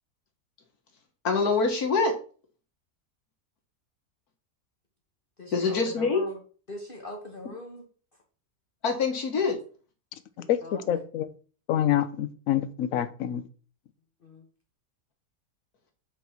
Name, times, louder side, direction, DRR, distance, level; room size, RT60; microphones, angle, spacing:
voice 1, 1.2-2.1 5.5-6.2 8.8-9.6, left 4 dB, 80° left, 2.1 m, -24 dB
voice 2, 5.4-6.4 6.7-7.9 10.4-11.0 14.2-14.5, left 2 dB, 40° left, 1.4 m, -41 dB
voice 3, 10.5-11.3 11.7-13.4, left 11 dB, 65° left, 1.1 m, -26 dB
8.1 x 4.1 x 4.4 m
omnidirectional pair, 1.6 m